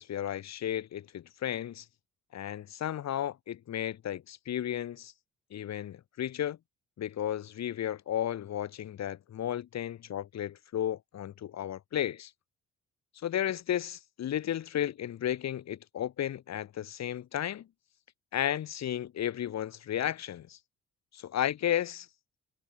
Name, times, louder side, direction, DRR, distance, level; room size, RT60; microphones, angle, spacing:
voice 1, 0.0-1.8 2.3-5.1 5.5-6.6 7.0-12.3 13.2-17.7 18.3-20.6 21.1-22.1, left 11 dB, 60° left, 1.6 m, -33 dB
cardioid pair, 90°, 30 cm